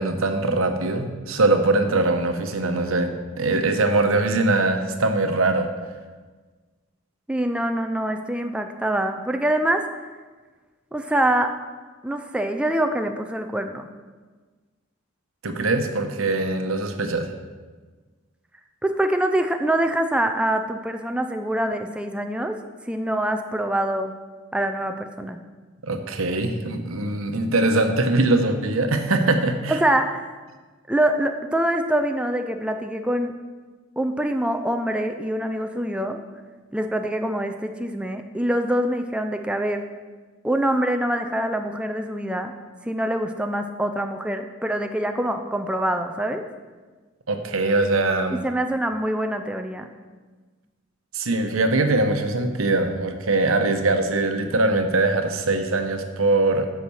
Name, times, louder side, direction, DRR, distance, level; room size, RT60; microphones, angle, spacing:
voice 1, 0.0-3.1 3.4-5.7 15.4-17.3 25.8-29.8 47.3-48.4 51.1-56.7, right 2 dB, 85° right, 6 dB, 0.9 m, -22 dB
voice 2, 7.3-9.9 10.9-11.6 12.0-13.9 18.8-22.6 22.9-24.1 24.5-25.4 29.7-30.3 30.9-33.3 34.0-36.2 36.7-39.9 40.4-42.5 42.8-46.5 48.4-49.9, right 1 dB, 5° right, 6 dB, 0.4 m, -24 dB
8.5 x 5.8 x 6.2 m, 1.4 s
head